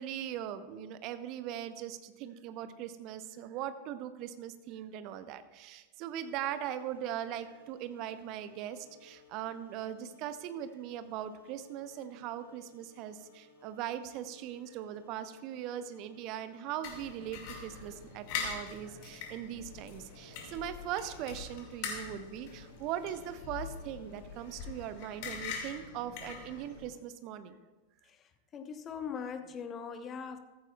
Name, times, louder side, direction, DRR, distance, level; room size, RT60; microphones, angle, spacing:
voice 1, 0.0-27.6, right 10 dB, 40° right, 11 dB, 0.8 m, -40 dB
sound 1, 6.1-24.6, left 4 dB, 70° left, 4.2 m, -60 dB
sound 2, 16.8-26.9, left 6 dB, 45° left, 2.1 m, -43 dB
voice 2, 28.0-30.4, left 6 dB, 25° left, 10 dB, 0.9 m, -41 dB
14.5 x 14.0 x 2.3 m, 1.2 s
figure-of-eight pair, 90°, 0 cm